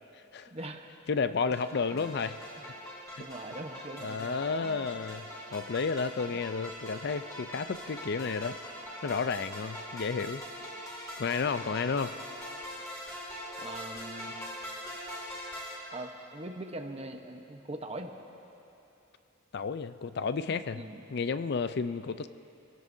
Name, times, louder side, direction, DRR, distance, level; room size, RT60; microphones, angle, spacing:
voice 1, 0.5-0.9 1.9-2.1 2.6-2.7 3.2-4.9 13.6-14.4 15.9-18.1 20.7-21.0, right 1 dB, 30° right, 4 dB, 1.0 m, -42 dB
voice 2, 1.1-2.4 3.1-3.2 4.0-8.6 9.0-10.4 11.2-12.1 19.5-20.8 21.1-22.3, left 5 dB, 55° left, 12 dB, 0.5 m, -32 dB
sound 1, 1.5-15.7, equal, 20° left, 4.5 m, -43 dB
28.0 x 17.0 x 2.7 m, 3.0 s
head